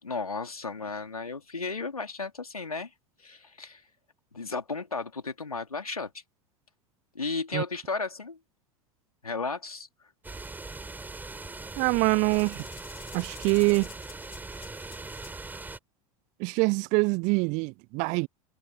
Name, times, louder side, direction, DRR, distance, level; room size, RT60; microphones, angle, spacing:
voice 1, 0.0-2.9 3.2-3.8 4.3-6.2 7.1-8.4 9.2-9.9, left 4 dB, 85° left, 3.1 m, -34 dB
sound 1, 10.2-15.8, right 3 dB, 10° right, 4.0 m, -41 dB
voice 2, 11.8-12.6 13.1-13.9 16.4-18.3, right 29 dB, 40° right, 0.6 m, -25 dB
sound 2, 12.3-15.5, left 10 dB, 30° left, 3.2 m, -50 dB
figure-of-eight pair, 85°, 18 cm